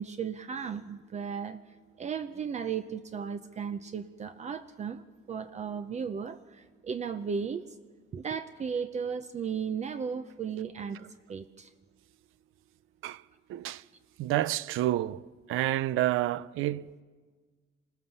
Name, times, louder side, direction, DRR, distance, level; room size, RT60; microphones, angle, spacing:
voice 1, 0.0-7.8 8.1-11.7, right 6 dB, 35° right, 0.6 m, -35 dB
voice 2, 13.5-13.8 14.2-15.2 15.5-17.0, right 14 dB, 80° right, 0.6 m, -29 dB
26.5 x 17.5 x 6.9 m
cardioid pair, 135°, 21 cm